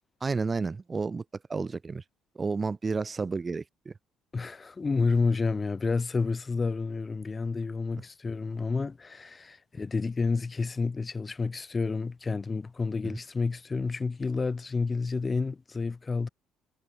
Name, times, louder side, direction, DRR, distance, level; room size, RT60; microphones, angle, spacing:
voice 1, 0.2-1.2 1.5-2.0 2.4-3.9, right 4 dB, 30° right, 0.9 m, -31 dB
voice 2, 4.3-16.3, left 4 dB, 30° left, 1.8 m, -30 dB
supercardioid pair, 70°, 0 cm